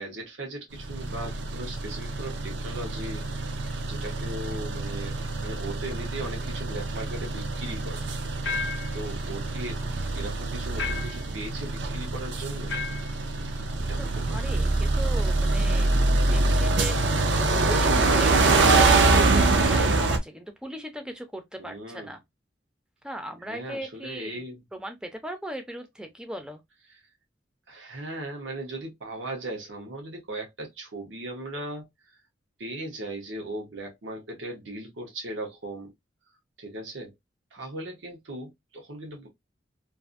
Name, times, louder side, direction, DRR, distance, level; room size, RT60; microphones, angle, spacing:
voice 1, 0.0-3.2 3.8-8.0 8.9-9.8 10.1-12.8 13.9-14.4 21.6-22.1 23.4-24.6 27.7-32.2 32.6-35.9 36.6-37.1 37.5-39.3, right 1 dB, 90° right, 0.9 m, -38 dB
sound 1, 0.8-20.2, right 3 dB, 75° right, 0.5 m, -25 dB
sound 2, 8.4-9.0 10.8-11.3 12.7-13.1, left 4 dB, 65° left, 0.5 m, -32 dB
voice 2, 14.0-22.2 23.0-24.4 24.7-26.6, right 1 dB, 5° right, 0.5 m, -38 dB
2.5 x 2.5 x 2.4 m
head